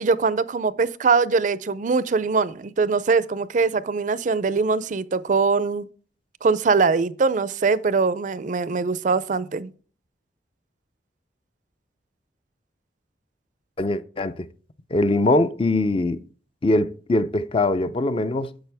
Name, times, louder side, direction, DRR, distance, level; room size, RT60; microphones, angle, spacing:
voice 1, 0.0-5.9 6.4-9.7, right 4 dB, 45° right, 0.4 m, -22 dB
voice 2, 13.8-14.5 14.9-16.2 16.6-18.5, left 2 dB, 30° left, 0.5 m, -22 dB
10.5 x 7.1 x 3.4 m
head